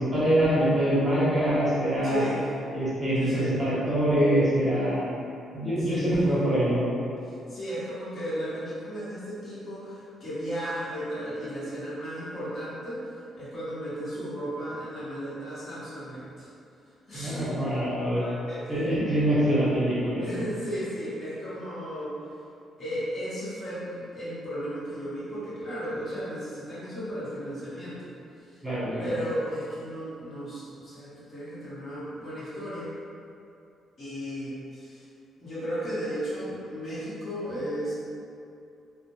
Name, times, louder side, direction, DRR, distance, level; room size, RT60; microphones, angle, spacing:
voice 1, 0.0-2.2 2.7-5.0 5.5-6.9 17.1-18.2 18.7-20.4 28.6-29.1, right 1 dB, 15° right, -10 dB, 0.9 m, -24 dB
voice 2, 2.0-2.5 3.2-3.5 5.8-6.2 7.3-13.1 13.4-16.5 17.1-17.5 18.1-18.7 20.2-22.2 22.8-28.1 28.4-28.6 29.0-32.9 34.0-35.0 35.4-37.9, equal, 50° left, -11 dB, 1.0 m, -35 dB
2.4 x 2.0 x 3.0 m, 2.6 s
cardioid pair, 90°, 0 cm